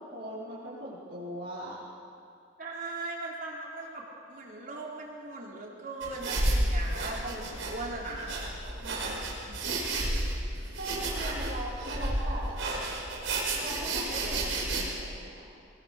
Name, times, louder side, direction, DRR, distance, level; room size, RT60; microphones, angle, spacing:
voice 1, 0.0-1.8 10.8-12.6 13.5-15.6, right 1 dB, 60° right, -9 dB, 5.5 m, -40 dB
voice 2, 2.6-8.3 8.8-9.5 11.2-11.4, right 2 dB, 45° right, -2 dB, 4.1 m, -39 dB
sound 1, 6.0-14.8, right 2 dB, 85° right, 4.9 m, -31 dB
24.0 x 21.5 x 6.7 m, 2.5 s
head